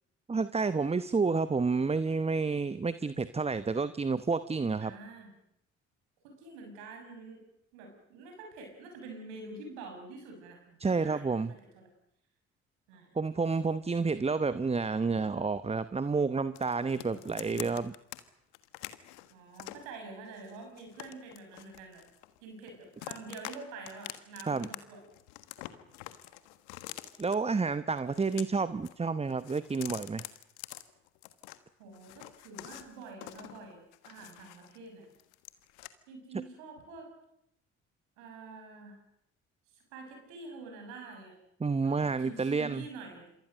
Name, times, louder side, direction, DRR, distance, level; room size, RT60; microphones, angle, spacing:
voice 1, 0.3-4.9 10.8-11.5 13.1-17.9 24.5-24.7 27.2-30.3 41.6-42.8, right 4 dB, 15° right, 14 dB, 0.9 m, -30 dB
voice 2, 4.8-5.3 6.2-7.4 7.7-11.9 12.9-13.2 17.1-17.6 19.3-22.0 22.4-25.0 31.8-35.1 36.1-37.1 38.2-39.0 39.7-41.4 41.8-43.4, right 3 dB, 75° right, 3 dB, 6.9 m, -47 dB
sound 1, 16.6-18.2 18.5-19.9 20.4-22.4 22.7-23.6 23.9-24.8 25.0-27.4 28.0-29.0 29.2-31.6 31.9-34.8 35.1-35.9, left 17 dB, 75° left, 1.5 m, -46 dB
27.5 x 23.5 x 6.6 m, 0.77 s
hypercardioid pair, 50°, 35 cm